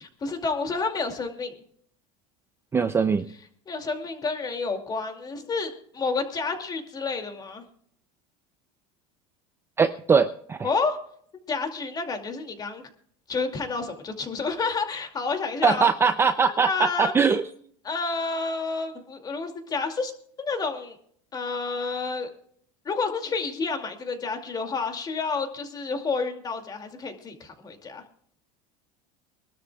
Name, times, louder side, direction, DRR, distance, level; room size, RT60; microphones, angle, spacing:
voice 1, 0.0-1.5 3.7-7.6 10.6-11.0 11.5-12.8 13.3-15.9 16.5-17.1 17.8-20.1 20.4-21.0 21.3-22.3 22.8-28.0, left 4 dB, 20° left, 5 dB, 2.5 m, -29 dB
voice 2, 2.7-3.3 9.8-10.7 15.6-17.4, right 5 dB, 15° right, 10 dB, 0.5 m, -21 dB
25.0 x 12.5 x 2.4 m, 0.62 s
supercardioid pair, 145°, 18 cm